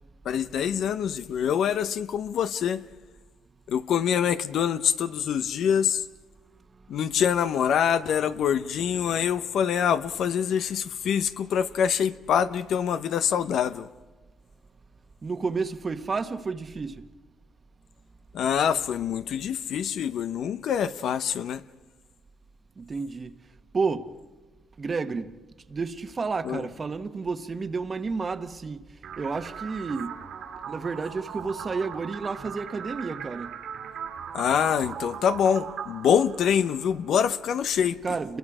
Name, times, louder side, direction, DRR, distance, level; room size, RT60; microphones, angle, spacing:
voice 1, 0.2-2.8 3.7-6.0 6.9-13.9 18.3-21.6 26.4-26.7 34.3-38.0, left 8 dB, 70° left, 0.8 m, -25 dB
voice 2, 15.2-17.0 22.8-23.3 23.7-24.1 24.8-25.4 25.7-28.9 29.2-30.2 30.7-33.5 38.0-38.4, right 4 dB, 35° right, 1.3 m, -31 dB
sound 1, 29.0-37.0, right 7 dB, 75° right, 2.5 m, -39 dB
29.5 x 22.5 x 4.9 m
cardioid pair, 90°, 0 cm